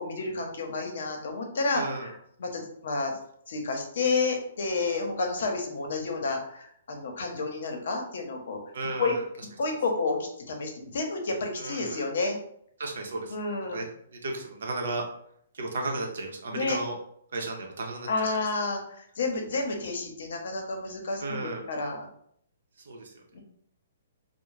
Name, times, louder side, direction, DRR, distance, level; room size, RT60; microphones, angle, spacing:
voice 1, 0.0-2.1 2.4-3.1 3.5-8.6 9.0-9.1 9.6-12.4 13.3-13.8 16.5-16.8 18.1-22.1 23.3-23.4, left 3 dB, 70° left, 2 dB, 0.7 m, -30 dB
voice 2, 1.7-2.1 8.7-9.2 11.6-12.0 12.8-13.8 14.1-15.0 15.5-17.0 17.3-18.1 21.2-21.6 22.8-23.1, right 2 dB, 75° right, 1 dB, 0.7 m, -34 dB
2.4 x 2.0 x 3.1 m, 0.67 s
hypercardioid pair, 140°, 0 cm